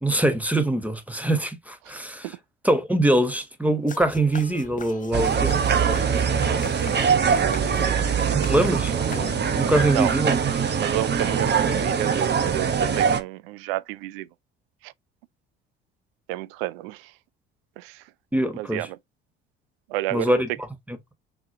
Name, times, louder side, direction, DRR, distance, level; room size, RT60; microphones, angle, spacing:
voice 1, 0.0-2.3 2.6-5.6 8.3-8.9 9.5-10.4 18.3-18.9 20.1-21.1, right 1 dB, 5° right, 1.2 m, -23 dB
sound 1, 3.9-9.7, left 6 dB, 25° left, 0.9 m, -40 dB
sound 2, 5.1-13.2, right 6 dB, 35° right, 1.0 m, -23 dB
voice 2, 7.2-8.5 9.0-9.1 9.9-10.1 10.8-14.3 16.3-17.0 17.8-17.9 18.6-18.9 19.9-20.4, right 17 dB, 70° right, 0.5 m, -30 dB
5.9 x 3.1 x 2.6 m
hypercardioid pair, 60°, 31 cm